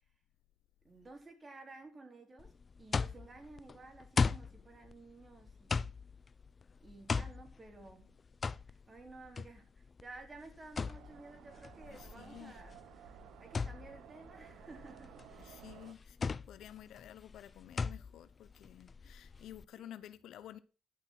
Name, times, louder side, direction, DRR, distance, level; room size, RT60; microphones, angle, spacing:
voice 1, 0.8-5.9 6.8-8.2 8.7-15.6 19.8-20.0, right 3 dB, 30° right, 4.1 m, -54 dB
sound 1, 2.4-19.6, left 4 dB, 35° left, 0.5 m, -39 dB
sound 2, 10.9-15.9, right 10 dB, 85° right, 1.0 m, -56 dB
voice 2, 11.9-12.5 15.4-20.6, left 11 dB, 80° left, 0.9 m, -52 dB
11.5 x 6.3 x 6.0 m
cardioid pair, 90°, 0 cm